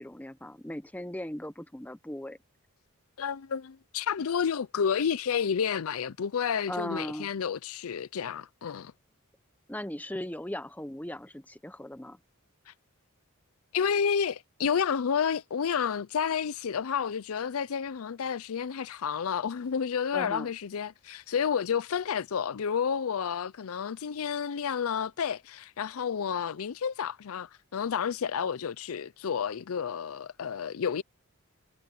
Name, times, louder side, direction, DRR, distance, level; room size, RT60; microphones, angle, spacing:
voice 1, 0.0-2.4 6.7-7.3 9.7-12.2 20.1-20.5, left 1 dB, 5° left, 0.9 m, -38 dB
voice 2, 3.2-8.9 12.7-12.8 13.7-31.0, left 7 dB, 80° left, 0.5 m, -30 dB
head